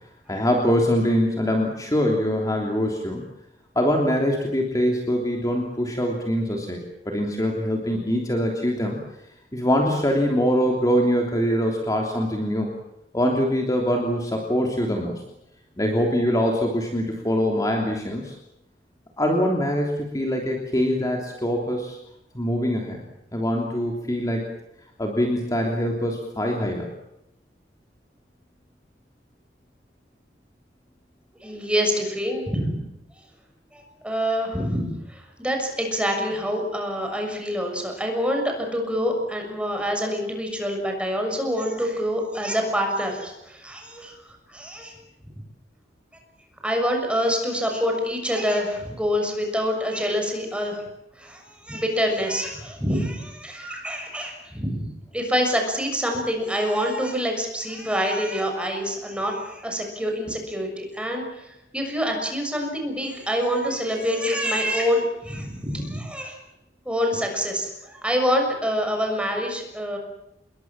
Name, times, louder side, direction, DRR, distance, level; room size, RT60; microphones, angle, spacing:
voice 1, 0.3-3.2 3.7-9.0 9.5-12.7 13.1-15.2 15.8-18.4 19.2-22.0 22.3-23.0 23.3-24.4 25.0-26.9, equal, 20° left, 0 dB, 3.2 m, -23 dB
voice 2, 31.4-32.8 33.7-44.1 44.5-45.0 46.6-50.8 51.2-66.4 66.8-70.0, equal, 5° right, 3 dB, 6.7 m, -26 dB
28.0 x 22.0 x 7.5 m, 0.85 s
head